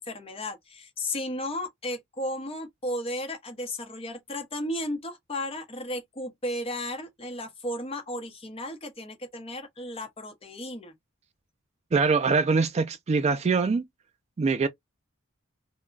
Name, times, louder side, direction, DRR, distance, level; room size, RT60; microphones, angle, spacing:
voice 1, 0.0-10.9, left 1 dB, 30° left, 0.8 m, -34 dB
voice 2, 11.9-13.8 14.4-14.7, right 4 dB, 30° right, 0.3 m, -23 dB
2.2 x 2.1 x 3.7 m
head